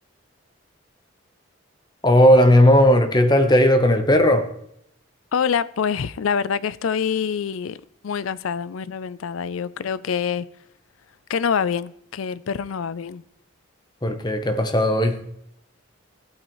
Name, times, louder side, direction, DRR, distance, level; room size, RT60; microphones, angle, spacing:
voice 1, 2.0-4.5 14.0-15.2, equal, 20° left, 0.9 m, -16 dB
voice 2, 5.3-7.8 8.0-10.5 11.3-13.2, left 7 dB, 85° left, 0.4 m, -25 dB
14.5 x 8.6 x 3.1 m
head